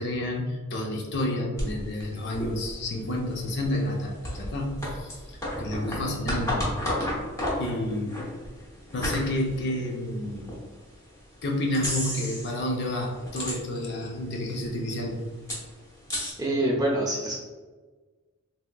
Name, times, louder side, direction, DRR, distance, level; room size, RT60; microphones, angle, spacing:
voice 1, 0.0-7.0 7.6-8.2 8.9-10.5 11.4-15.2, left 1 dB, 50° left, 0 dB, 0.5 m, -30 dB
sound 1, 1.6-10.6 11.1-11.2 11.7-12.6 12.9-14.0 14.3-14.4 14.6-16.3, left 1 dB, 15° left, 0.8 m, -33 dB
voice 2, 16.4-17.4, right 1 dB, 15° right, -3 dB, 0.5 m, -25 dB
3.4 x 2.8 x 2.2 m, 1.3 s
head